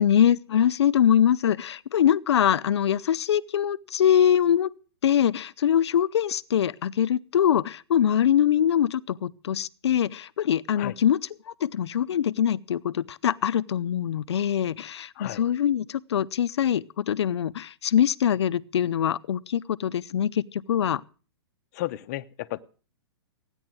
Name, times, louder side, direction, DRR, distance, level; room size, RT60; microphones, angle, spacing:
voice 1, 0.0-4.7 5.0-11.3 11.6-21.0, left 9 dB, 75° left, 0.6 m, -23 dB
voice 2, 21.7-22.6, left 16 dB, 40° left, 0.7 m, -33 dB
15.5 x 9.9 x 6.1 m
hypercardioid pair, 150°, 14 cm